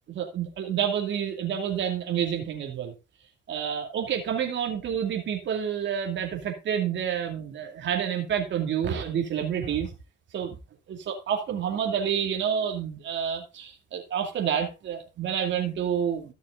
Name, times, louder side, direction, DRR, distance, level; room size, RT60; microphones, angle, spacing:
voice 1, 0.1-2.9 3.5-9.9 10.3-10.6 10.9-16.3, right 8 dB, 65° right, 3 dB, 2.5 m, -29 dB
14.0 x 6.6 x 3.8 m, 0.28 s
cardioid pair, 90°, 20 cm